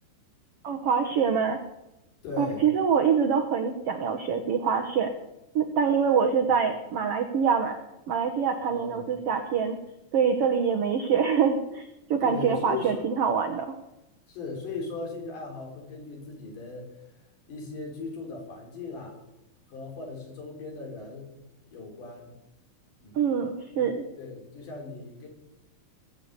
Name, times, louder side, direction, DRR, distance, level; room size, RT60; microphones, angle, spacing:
voice 1, 0.6-1.6 2.4-5.2 5.5-7.8 8.1-9.8 10.1-13.7 23.1-24.0, right 6 dB, 85° right, 4 dB, 1.3 m, -25 dB
voice 2, 2.2-2.7 8.6-9.1 12.2-13.1 14.3-17.0 17.5-19.2 19.7-21.3 21.7-22.3 23.0-23.3 23.8-23.9 24.2-25.3, left 4 dB, 60° left, 0 dB, 5.0 m, -38 dB
20.5 x 7.0 x 8.1 m, 0.93 s
omnidirectional pair, 4.3 m